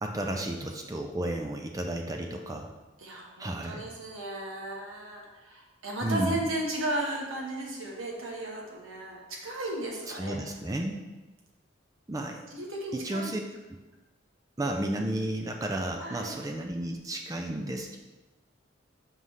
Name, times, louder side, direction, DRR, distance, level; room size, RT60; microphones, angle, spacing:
voice 1, 0.0-2.7 3.4-3.9 6.0-6.4 10.1-11.1 12.1-12.4 12.9-13.4 14.6-18.0, right 1 dB, 15° right, 3 dB, 0.4 m, -32 dB
voice 2, 3.0-10.4 12.5-13.4 16.0-16.4, right 1 dB, 85° right, -2 dB, 1.3 m, -35 dB
5.3 x 3.2 x 5.5 m, 1.2 s
head